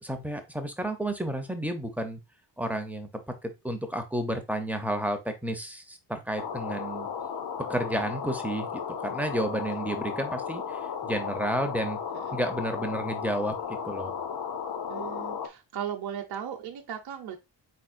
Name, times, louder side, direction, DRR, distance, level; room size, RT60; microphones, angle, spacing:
voice 1, 0.0-2.2 2.6-3.1 3.4-7.1 7.7-12.0 12.3-13.5 13.8-14.1, right 1 dB, 5° right, 0.5 m, -31 dB
sound 1, 6.4-15.5, left 7 dB, 55° left, 0.7 m, -34 dB
voice 2, 14.9-17.4, right 9 dB, 55° right, 0.7 m, -37 dB
4.4 x 4.2 x 2.4 m
wide cardioid pair, 170°, 45 cm